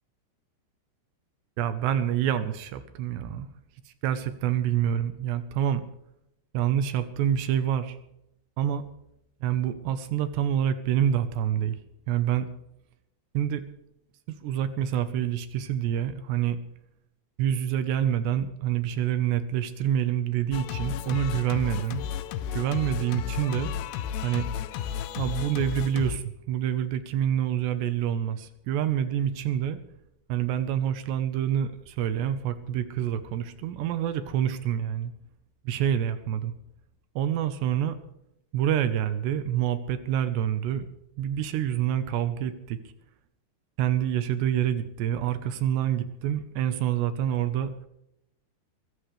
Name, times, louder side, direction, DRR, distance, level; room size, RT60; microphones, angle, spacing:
voice 1, 1.6-3.5 4.0-5.8 6.5-8.0 8.6-8.9 9.4-11.8 12.1-12.5 13.3-13.6 14.4-16.6 17.4-22.0 22.5-23.7 24.2-24.5 25.2-29.8 30.3-35.1 35.6-36.5 37.2-38.0 38.5-40.9 41.2-42.8 43.8-47.7, right 10 dB, 80° right, 10 dB, 3.2 m, -27 dB
Singing, 20.5-26.2, left 9 dB, 85° left, 3.0 m, -33 dB
23.0 x 14.0 x 3.4 m, 0.79 s
omnidirectional pair, 4.9 m